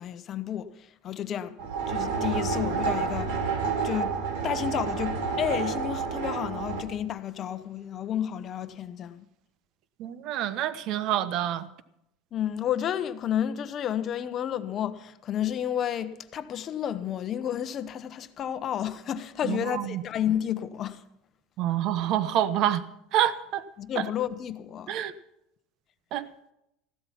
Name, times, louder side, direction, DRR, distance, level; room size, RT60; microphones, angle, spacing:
voice 1, 0.0-1.6 1.9-3.3 3.8-4.1 4.4-9.2 12.3-21.0 23.8-25.1, left 10 dB, 30° left, 0.9 m, -31 dB
sound 1, 1.6-6.8, right 5 dB, 85° right, 3.2 m, -29 dB
voice 2, 10.0-11.7 19.4-20.0 21.6-22.8 23.1-23.6 24.0-24.1 24.9-25.1 26.1-26.2, right 11 dB, 45° right, 0.9 m, -27 dB
15.0 x 12.5 x 5.8 m
cardioid pair, 155°, 0 cm